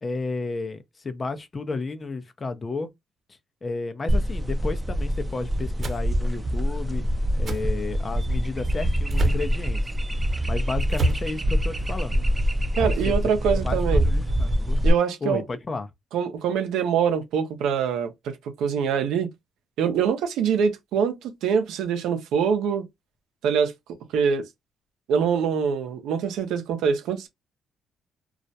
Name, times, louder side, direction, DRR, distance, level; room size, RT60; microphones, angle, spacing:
voice 1, 0.0-2.9 3.6-7.0 7.4-9.8 10.4-12.2 12.8-13.1 13.4-14.8 15.2-15.9, left 3 dB, 30° left, 0.5 m, -32 dB
sound 1, 4.1-14.9, equal, 20° right, 0.5 m, -25 dB
sound 2, 5.8-6.0 7.4-7.6 9.1-9.5 10.9-11.3, right 2 dB, 45° right, 0.9 m, -26 dB
voice 2, 12.7-14.0 14.8-15.4 16.1-19.3 19.8-22.9 23.4-23.7 24.1-24.5 25.1-27.3, right 7 dB, 85° right, 0.6 m, -24 dB
2.3 x 2.1 x 2.7 m
cardioid pair, 90°, 0 cm